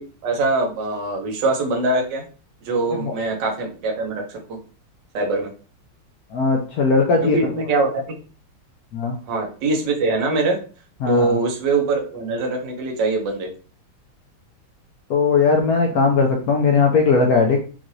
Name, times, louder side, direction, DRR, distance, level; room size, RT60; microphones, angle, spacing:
voice 1, 0.0-2.2 2.6-4.6 5.1-5.5 7.3-8.0 9.3-10.6 11.1-13.5, right 3 dB, 65° right, 2 dB, 1.4 m, -23 dB
voice 2, 6.3-7.5 8.9-9.2 11.0-11.4 15.1-17.6, left 4 dB, 75° left, 2 dB, 0.8 m, -18 dB
5.5 x 2.5 x 3.1 m, 0.37 s
omnidirectional pair, 2.3 m